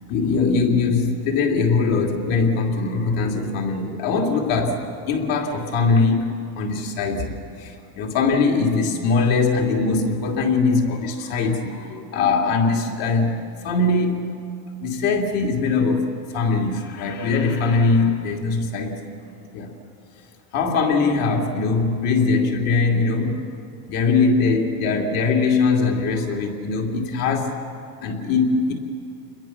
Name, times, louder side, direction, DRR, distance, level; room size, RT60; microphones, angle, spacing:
voice 1, 0.1-13.4 13.6-14.3 14.8-19.1 19.5-19.7 20.5-23.4 23.9-27.6 28.0-28.7, left 4 dB, 50° left, 1 dB, 3.1 m, -21 dB
28.5 x 21.5 x 6.0 m, 2.6 s
supercardioid pair, 155°, 47 cm